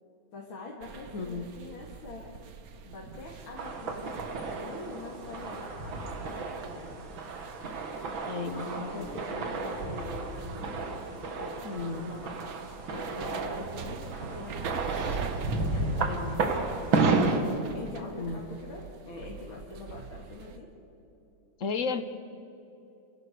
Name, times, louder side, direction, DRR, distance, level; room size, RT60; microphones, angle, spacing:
voice 1, 0.3-2.4 2.8-7.3 8.5-10.8 11.4-12.4 12.9-15.0 15.3-17.1 17.7-20.7, left 3 dB, 90° left, -2 dB, 3.0 m, -44 dB
sound 1, 0.8-20.6, right 6 dB, 55° right, 1.3 m, -44 dB
voice 2, 1.1-1.5 8.2-9.1 11.6-12.1 16.0-16.4 18.1-18.6 21.6-22.0, left 4 dB, 50° left, 10 dB, 1.2 m, -34 dB
sound 2, 3.6-17.4, right 3 dB, 80° right, 2.6 m, -32 dB
28.5 x 15.5 x 6.8 m, 2.9 s
omnidirectional pair, 2.1 m